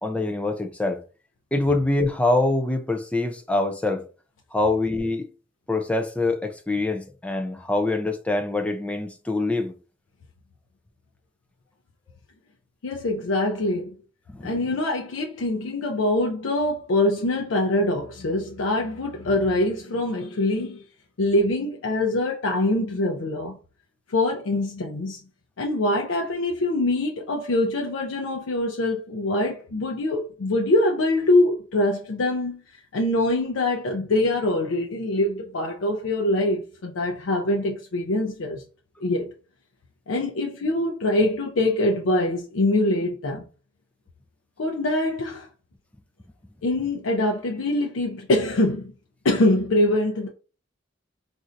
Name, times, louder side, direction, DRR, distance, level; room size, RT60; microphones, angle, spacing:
voice 1, 0.0-1.0 1.5-4.0 4.5-5.3 5.7-9.7 14.3-14.6, left 2 dB, 5° left, 0.4 m, -24 dB
voice 2, 12.8-14.0 14.4-20.8 21.2-23.6 24.1-25.2 25.6-32.6 32.9-38.6 39.0-39.3 40.1-43.4 44.6-45.5 46.6-48.9 49.2-50.3, left 1 dB, 80° left, 0.5 m, -24 dB
4.2 x 2.5 x 2.5 m
head